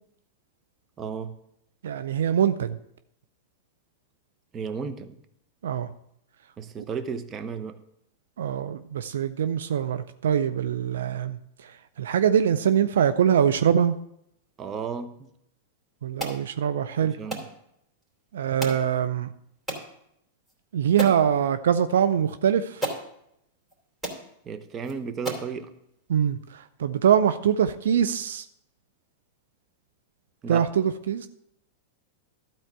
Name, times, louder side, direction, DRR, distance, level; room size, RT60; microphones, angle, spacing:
voice 1, 1.0-1.3 4.5-5.2 6.6-7.8 14.6-15.3 17.0-17.4 24.5-25.7 30.4-30.7, right 6 dB, 30° right, 9 dB, 0.9 m, -34 dB
voice 2, 1.8-2.8 5.6-5.9 6.8-6.9 8.4-14.0 16.0-17.2 18.3-19.3 20.7-22.9 26.1-28.5 30.5-31.3, right 8 dB, 75° right, 12 dB, 0.4 m, -23 dB
sound 1, 16.2-16.4 17.3-17.5 18.6-18.9 19.7-19.9 20.5-20.6 21.0-21.2 22.3-22.4 22.8-23.1 23.7-23.8 24.0-24.2 24.8-24.9 25.3-25.5, right 1 dB, 10° right, 3.2 m, -32 dB
12.5 x 4.4 x 7.3 m, 0.76 s
hypercardioid pair, 105°, 0 cm